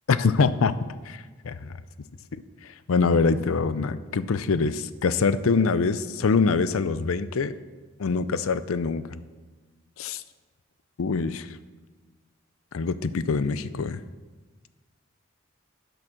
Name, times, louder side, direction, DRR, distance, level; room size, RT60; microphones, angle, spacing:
voice 1, 0.1-0.7 1.1-1.8 2.3-2.4 2.9-7.5 8.0-9.2 10.0-10.2 11.0-11.5 12.7-14.0, left 4 dB, 75° left, 14 dB, 0.5 m, -24 dB
10.5 x 6.1 x 6.4 m, 1.3 s
head